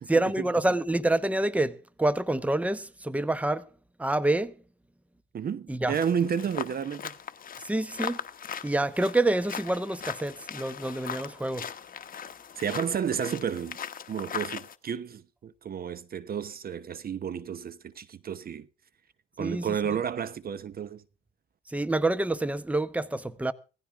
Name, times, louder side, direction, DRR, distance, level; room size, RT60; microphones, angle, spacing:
voice 1, 0.1-3.6 4.0-4.5 5.7-6.0 7.6-8.2 8.6-11.7 19.4-19.7 21.7-23.5, right 2 dB, 5° right, 1.0 m, -27 dB
voice 2, 5.3-7.2 12.6-13.8 14.1-18.7 19.4-21.0, right 7 dB, 50° right, 0.9 m, -31 dB
sound 1, 5.9-14.7, left 8 dB, 45° left, 1.1 m, -39 dB
17.0 x 15.0 x 3.6 m
cardioid pair, 90°, 20 cm